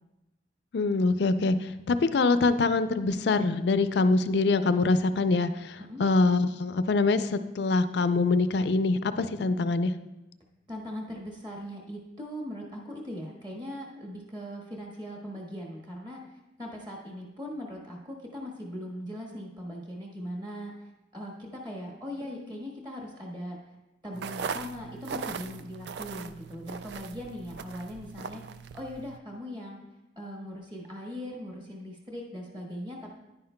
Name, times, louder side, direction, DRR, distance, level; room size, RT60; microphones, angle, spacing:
voice 1, 0.7-9.9 22.3-22.4, left 3 dB, 65° left, 11 dB, 0.4 m, -24 dB
voice 2, 10.7-23.6 24.0-28.4 28.7-29.8 30.2-33.2, equal, 25° right, -1 dB, 1.2 m, -40 dB
sound 1, 24.1-29.2, right 6 dB, 65° right, 0.3 m, -39 dB
10.0 x 9.4 x 2.2 m, 0.98 s
head